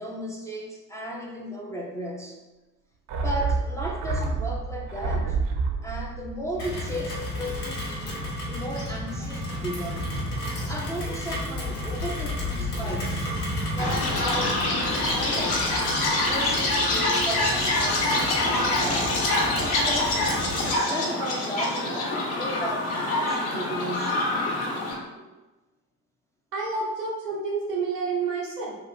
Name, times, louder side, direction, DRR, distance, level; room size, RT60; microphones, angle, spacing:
voice 1, 0.0-2.4 3.2-5.4 5.8-8.1 8.5-10.1 10.7-13.3 13.7-15.7 16.1-19.3 19.6-24.4, equal, 5° left, -2 dB, 0.3 m, -35 dB
sound 1, 3.1-7.7 8.0-8.1, right 4 dB, 45° right, 0.6 m, -29 dB
Rain, 6.6-20.8, left 1 dB, 80° left, 0.9 m, -32 dB
Chirp tweet, 13.8-24.9, left 2 dB, 60° left, 1.1 m, -25 dB
voice 2, 26.5-28.8, right 4 dB, 85° right, -3 dB, 0.8 m, -29 dB
3.0 x 2.5 x 4.0 m, 1.1 s
figure-of-eight pair, 50°, 46 cm